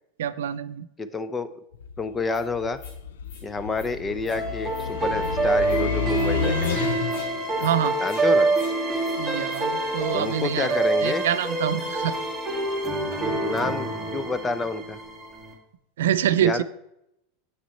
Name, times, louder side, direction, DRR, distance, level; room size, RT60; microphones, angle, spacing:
voice 1, 0.2-0.9 7.6-8.0 9.2-12.2 16.0-16.6, right 10 dB, 90° right, 14 dB, 0.4 m, -25 dB
voice 2, 1.0-1.6 2.0-2.8 3.4-6.8 8.0-8.5 10.1-11.2 13.4-15.0 16.4-16.6, left 3 dB, 15° left, 14 dB, 0.5 m, -29 dB
sound 1, 1.7-7.4, left 7 dB, 90° left, 0.4 m, -31 dB
sound 2, 2.3-2.4 2.8-3.0 3.2-3.4 3.7-3.9 4.2-4.4 4.7-4.9 5.2-5.3 5.6-5.8 6.1-6.3 6.6-6.8 7.1-7.3 7.6-7.7 8.0-8.2 8.5-8.7 9.0-9.2 9.5-9.6, left 4 dB, 70° left, 1.7 m, -46 dB
sound 3, 4.3-15.5, right 2 dB, ahead, 2.0 m, -26 dB
8.0 x 6.1 x 4.2 m, 0.81 s
supercardioid pair, 135°, 0 cm